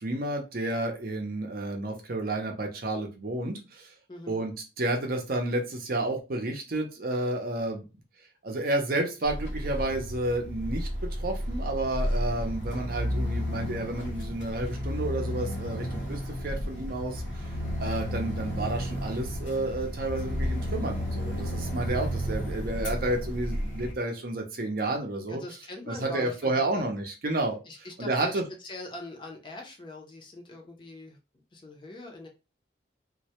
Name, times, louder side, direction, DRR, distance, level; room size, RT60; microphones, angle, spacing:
voice 1, 0.0-3.9 4.3-7.8 8.4-17.5 17.8-25.4 25.9-27.6 28.0-28.4, right 2 dB, 50° right, 3 dB, 0.5 m, -31 dB
voice 2, 4.1-4.5 21.9-22.5 25.3-26.9 27.7-31.2 31.5-32.3, left 2 dB, 25° left, 1 dB, 0.4 m, -43 dB
sound 1, 9.2-23.9, equal, 80° left, 0.8 m, -32 dB
2.2 x 2.0 x 2.8 m, 0.29 s
head